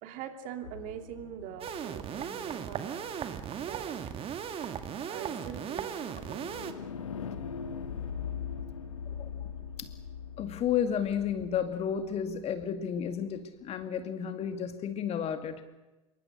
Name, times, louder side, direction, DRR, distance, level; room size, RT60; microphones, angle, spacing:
voice 1, 0.0-4.0 5.1-6.7, right 9 dB, 50° right, 6 dB, 2.8 m, -43 dB
sound 1, 0.6-2.8 4.6-12.7, left 7 dB, 75° left, 1.7 m, -42 dB
sound 2, 1.6-6.7, right 8 dB, 35° right, 2.0 m, -37 dB
voice 2, 9.2-9.5 9.8-9.9 10.4-15.7, left 8 dB, 35° left, 8 dB, 2.2 m, -32 dB
27.0 x 23.5 x 6.6 m, 1.1 s
figure-of-eight pair, 75°, 17 cm